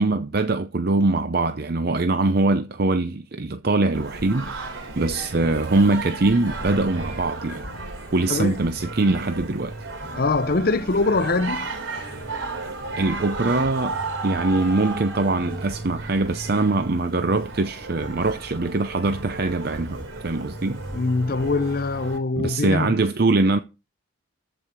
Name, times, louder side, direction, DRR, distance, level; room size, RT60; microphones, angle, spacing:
voice 1, 0.0-4.5 5.0-7.7 8.1-9.7 13.0-14.0 14.2-20.0 20.2-20.8 22.4-23.6, right 2 dB, 50° right, 0.6 m, -22 dB
Singing, 3.9-22.2, right 2 dB, 80° right, 3.5 m, -34 dB
voice 2, 10.2-11.7 20.9-23.0, left 3 dB, 45° left, 0.7 m, -23 dB
14.0 x 5.0 x 5.9 m
head